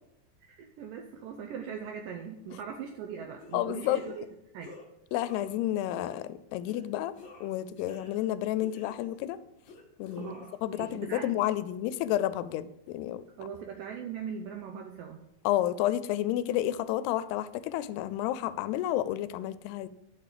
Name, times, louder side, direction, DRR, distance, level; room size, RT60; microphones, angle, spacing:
voice 1, 0.5-4.3 4.5-4.8 10.2-11.3 13.4-15.2, right 7 dB, 80° right, 4 dB, 2.0 m, -40 dB
sound 1, 3.4-3.6 3.9-4.3 4.6-4.9 5.2-5.6 5.9-6.2 6.7-6.8 7.1-8.3 8.6-9.2 9.6-10.6, left 2 dB, 45° left, 1.5 m, -50 dB
voice 2, 3.5-4.0 5.1-7.1 7.4-9.4 10.0-10.3 10.6-13.2 15.4-19.9, left 13 dB, 85° left, 15 dB, 2.6 m, -30 dB
11.0 x 6.5 x 5.0 m, 0.90 s
omnidirectional pair, 4.7 m